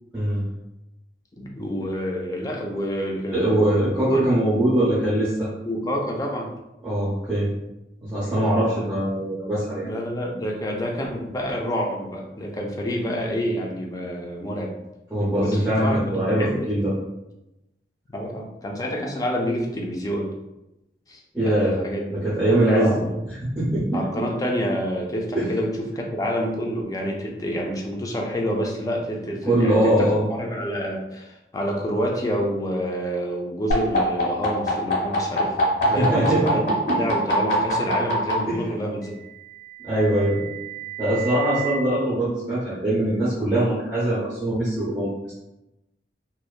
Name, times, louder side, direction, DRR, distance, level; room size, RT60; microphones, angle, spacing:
voice 1, 0.1-0.4 3.3-5.5 6.8-7.5 8.0-9.9 15.1-16.9 21.3-21.8 22.1-23.0 23.5-24.0 25.3-25.5 29.4-30.3 35.8-36.6 36.9-37.0 38.5-38.7 39.8-40.6 41.0-45.3, right 1 dB, 5° right, -12 dB, 0.7 m, -22 dB
voice 2, 1.3-4.9 5.7-6.5 9.8-14.7 15.4-16.0 16.4-16.7 18.1-20.3 21.1-22.1 22.7-23.1 23.9-35.5 35.9-36.7 37.0-39.1, equal, 20° left, 0 dB, 0.3 m, -28 dB
sound 1, 33.7-38.3 39.5-41.7, left 1 dB, 65° left, 1.3 m, -29 dB
2.8 x 2.2 x 2.3 m, 0.92 s
head